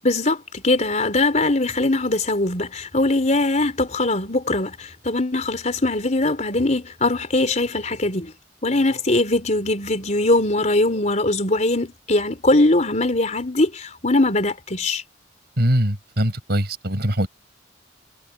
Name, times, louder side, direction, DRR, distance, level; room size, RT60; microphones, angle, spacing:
voice 1, 0.0-8.3 8.6-15.0, left 2 dB, 40° left, 4.1 m, -21 dB
voice 2, 15.6-17.3, equal, 60° right, 5.8 m, -22 dB
head